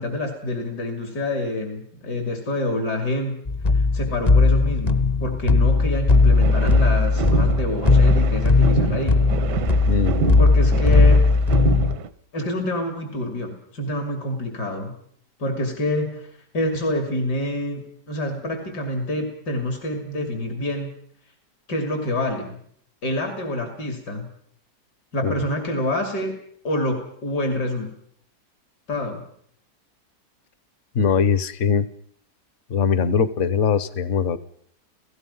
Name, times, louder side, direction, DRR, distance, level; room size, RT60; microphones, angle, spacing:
voice 1, 0.0-3.4 3.9-9.2 10.4-11.3 12.3-14.9 15.4-16.3 16.5-20.9 21.7-22.6 23.0-24.3 25.1-26.4 26.6-27.9 28.9-29.2, left 1 dB, 75° left, 4 dB, 3.4 m, -27 dB
sound 1, 3.5-12.0, left 3 dB, 30° left, 0.8 m, -18 dB
sound 2, 6.1-12.1, right 7 dB, 80° right, 1.6 m, -28 dB
voice 2, 9.8-10.4 25.2-25.3 30.9-31.9 32.7-34.4, left 6 dB, 50° left, 15 dB, 1.3 m, -21 dB
29.5 x 17.0 x 5.6 m, 0.66 s
omnidirectional pair, 1.8 m